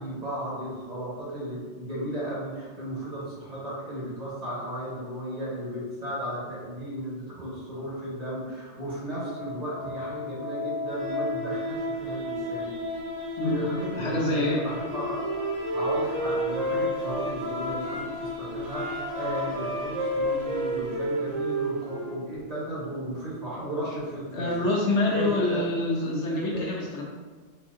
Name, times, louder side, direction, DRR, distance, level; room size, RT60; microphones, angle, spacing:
voice 1, 0.0-12.7 13.4-15.2 15.7-24.7 25.1-25.7 26.5-26.9, right 1 dB, 35° right, -8 dB, 1.0 m, -35 dB
sound 1, 9.1-21.9, left 2 dB, 60° right, 1.3 m, -36 dB
voice 2, 13.9-14.6 24.3-27.0, left 2 dB, 65° left, -2 dB, 0.8 m, -26 dB
Wind instrument woodwind instrument, 14.7-18.0 18.6-22.2, right 1 dB, 85° right, 1.2 m, -30 dB
4.1 x 2.6 x 2.4 m, 1.4 s
omnidirectional pair, 1.4 m